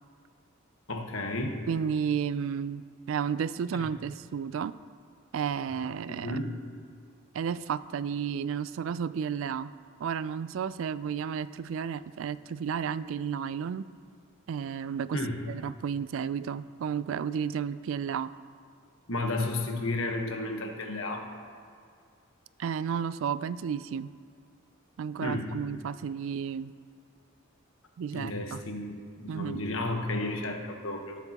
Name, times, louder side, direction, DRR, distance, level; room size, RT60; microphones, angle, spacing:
voice 1, 0.9-1.7 3.7-3.9 6.1-6.5 15.1-15.5 19.1-21.3 25.2-25.5 28.1-31.2, left 2 dB, 70° left, 3 dB, 1.2 m, -32 dB
voice 2, 1.7-2.8 3.1-4.8 5.3-6.4 7.3-9.7 10.0-13.9 14.5-15.2 15.5-18.3 22.6-24.1 25.0-26.7 28.0-28.6 29.3-29.7, right 7 dB, 65° right, 16 dB, 0.3 m, -32 dB
19.0 x 8.1 x 2.9 m, 2.3 s
head